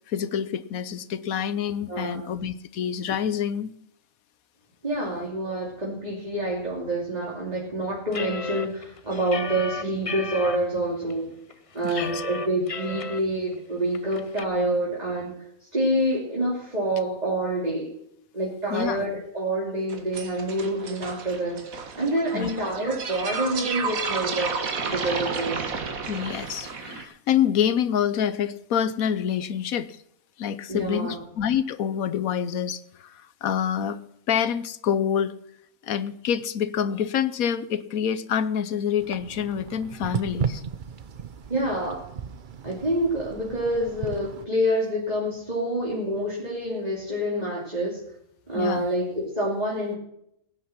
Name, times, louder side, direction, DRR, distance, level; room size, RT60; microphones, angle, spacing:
voice 1, 0.1-3.7 11.8-12.2 18.7-19.1 22.3-22.5 26.1-30.0 30.4-34.0 34.3-35.3 35.8-40.6 48.5-48.9, left 8 dB, 75° left, 14 dB, 1.2 m, -27 dB
voice 2, 1.9-2.3 4.8-11.3 11.7-15.4 15.7-17.9 18.3-24.5 24.8-25.7 30.7-31.2 41.5-42.0 42.6-48.0 48.5-50.0, right 1 dB, 25° right, -4 dB, 3.0 m, -27 dB
sound 1, 8.1-10.6 11.1-11.2 11.5-13.2 13.5-13.6 13.9-14.4, left 4 dB, 35° left, 0.5 m, -34 dB
sound 2, 19.9-27.0, right 4 dB, 70° right, 2.0 m, -32 dB
sound 3, 39.0-44.5, right 7 dB, 45° right, 0.7 m, -35 dB
16.5 x 9.6 x 5.9 m, 0.76 s
omnidirectional pair, 1.5 m